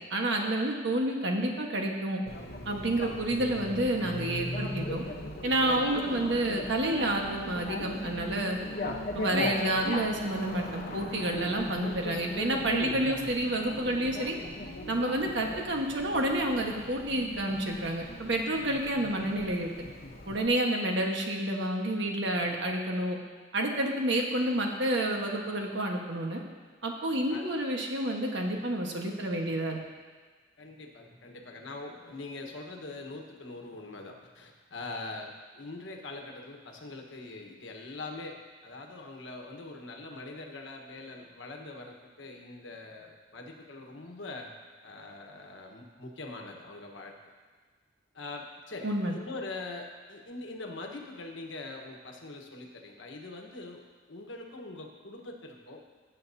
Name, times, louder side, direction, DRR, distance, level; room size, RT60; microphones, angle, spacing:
voice 1, 0.1-2.2 2.6-5.0 5.4-8.6 9.1-14.3 14.9-19.7 20.3-23.2 23.5-26.4 26.8-29.8 48.8-49.1, right 1 dB, 65° right, 1 dB, 1.4 m, -29 dB
Bicycle, 2.3-20.5, left 1 dB, 50° left, 1.0 m, -39 dB
voice 2, 30.6-38.4 38.6-44.5 44.8-47.1 48.1-55.8, left 2 dB, 75° left, 2 dB, 1.3 m, -43 dB
18.0 x 7.9 x 2.8 m, 1.4 s
head